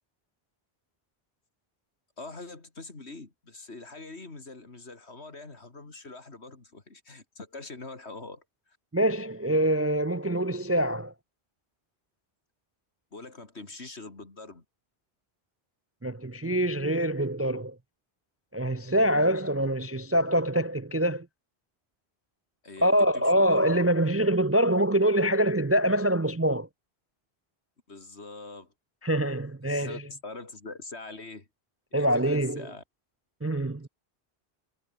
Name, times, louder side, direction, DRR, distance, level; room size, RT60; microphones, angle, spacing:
voice 1, 2.2-8.8 13.1-14.6 22.6-23.7 27.9-28.7 29.7-31.5 31.9-32.8, left 3 dB, 80° left, 3.4 m, -44 dB
voice 2, 8.9-11.1 16.0-17.8 18.5-21.3 22.8-26.7 29.0-30.0 31.9-32.7 33.4-33.9, right 1 dB, 20° right, 0.4 m, -25 dB
omnidirectional pair, 1.1 m